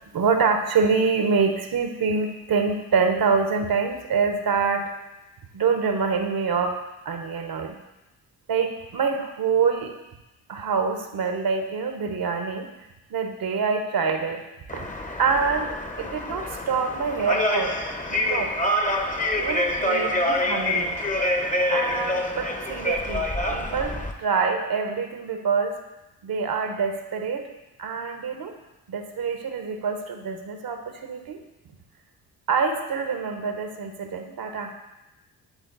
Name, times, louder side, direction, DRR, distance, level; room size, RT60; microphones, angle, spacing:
voice 1, 0.1-4.9 5.5-6.8 7.0-7.8 8.5-9.9 10.5-12.7 13.1-14.4 14.7-14.9 15.2-17.8 18.1-18.5 19.3-21.0 21.7-25.8 26.2-27.4 27.8-28.5 28.9-31.4 32.5-34.7, right 5 dB, 60° right, 5 dB, 1.1 m, -25 dB
sound 1, 14.7-24.1, left 1 dB, 20° left, 1.0 m, -26 dB
11.0 x 3.8 x 4.0 m, 0.98 s
supercardioid pair, 50°, 41 cm